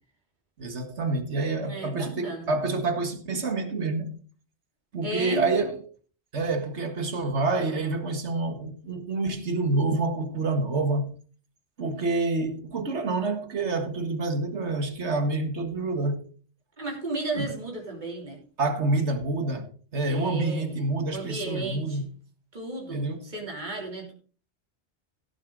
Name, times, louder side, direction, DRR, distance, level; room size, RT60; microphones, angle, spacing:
voice 1, 0.6-4.2 4.9-5.9 6.3-11.1 11.8-16.3 17.4-17.5 18.6-22.1 22.9-23.3, right 3 dB, 85° right, 2.0 m, -27 dB
voice 2, 1.6-2.5 5.0-5.7 16.8-18.4 20.1-20.8 21.1-22.1 22.5-24.1, right 2 dB, 45° right, 3.5 m, -34 dB
17.0 x 7.2 x 3.9 m
omnidirectional pair, 1.1 m